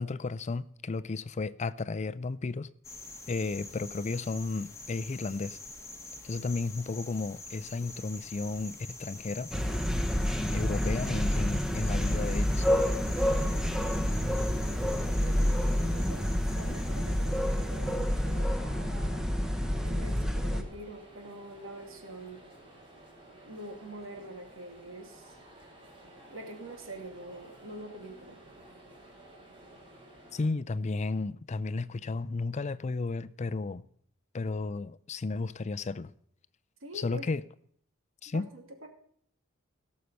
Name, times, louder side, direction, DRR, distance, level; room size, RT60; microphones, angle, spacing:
voice 1, 0.0-2.7 3.3-5.6 6.2-9.5 10.5-12.7 30.3-33.8 34.3-36.1 36.9-37.4 38.2-38.5, left 3 dB, 35° left, 0.4 m, -33 dB
sound 1, 2.8-18.6, left 3 dB, 15° left, 1.3 m, -46 dB
sound 2, 9.5-20.6, equal, 5° right, 1.0 m, -28 dB
Crowded inner space, 11.9-30.5, right 1 dB, 30° right, 4.2 m, -53 dB
voice 2, 14.6-19.2 19.8-22.4 23.4-25.4 26.3-28.4 36.8-37.2 38.3-38.9, right 1 dB, 75° right, 2.7 m, -45 dB
17.0 x 6.5 x 6.8 m
head